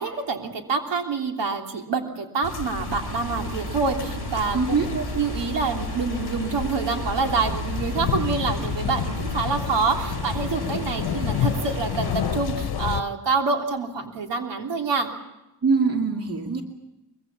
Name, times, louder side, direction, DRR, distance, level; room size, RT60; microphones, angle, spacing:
voice 1, 0.0-4.6 4.9-15.1, right 4 dB, 85° right, 3 dB, 3.3 m, -26 dB
sound 1, 2.4-13.0, left 9 dB, 65° left, 1.0 m, -30 dB
sound 2, 2.7-12.4, right 2 dB, 70° right, 3.2 m, -34 dB
voice 2, 4.5-4.9 15.6-16.6, right 4 dB, 35° right, 3 dB, 2.5 m, -23 dB
23.5 x 23.0 x 7.3 m, 0.95 s
wide cardioid pair, 165°, 41 cm